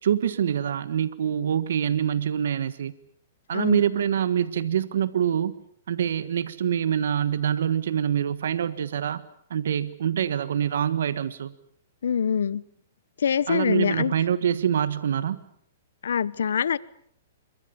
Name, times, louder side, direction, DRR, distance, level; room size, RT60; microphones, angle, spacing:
voice 1, 0.0-2.9 3.5-5.5 5.9-9.2 9.5-11.5 13.5-15.4, right 9 dB, 75° right, 14 dB, 1.5 m, -25 dB
voice 2, 12.0-12.6 13.2-14.1 16.0-16.8, left 7 dB, 80° left, 20 dB, 1.0 m, -24 dB
27.0 x 23.5 x 7.1 m, 0.66 s
hypercardioid pair, 140°, 0 cm